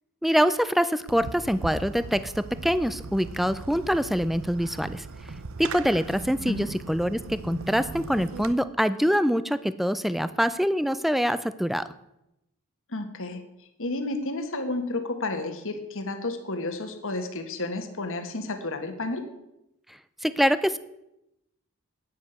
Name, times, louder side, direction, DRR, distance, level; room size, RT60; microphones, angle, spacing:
voice 1, 0.2-5.0 5.6-11.9 20.2-20.8, equal, ahead, 15 dB, 0.5 m, -25 dB
Fireworks, 1.1-8.5, right 3 dB, 65° right, 0.7 m, -39 dB
voice 2, 12.9-13.4 13.8-19.2, left 2 dB, 60° left, 7 dB, 1.7 m, -31 dB
10.0 x 9.6 x 8.1 m, 0.87 s
head